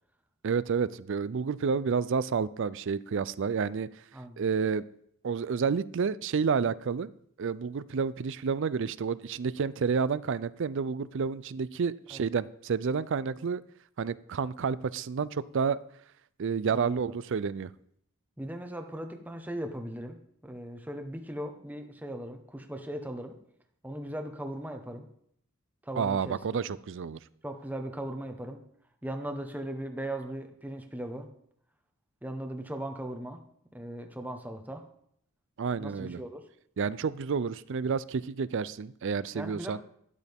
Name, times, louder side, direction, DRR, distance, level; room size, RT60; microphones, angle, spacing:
voice 1, 0.4-3.9 4.4-4.8 5.2-7.1 7.4-13.6 14.0-15.8 16.4-17.7 26.0-27.2 35.6-36.2 36.8-39.8, right 5 dB, 60° right, 18 dB, 0.4 m, -30 dB
voice 2, 16.7-17.0 18.4-23.4 23.8-25.1 25.8-26.7 27.4-28.6 29.0-31.3 32.2-33.4 33.7-34.9 35.8-36.4 39.3-39.8, right 1 dB, 10° right, 5 dB, 1.1 m, -38 dB
12.0 x 11.5 x 3.6 m, 0.69 s
head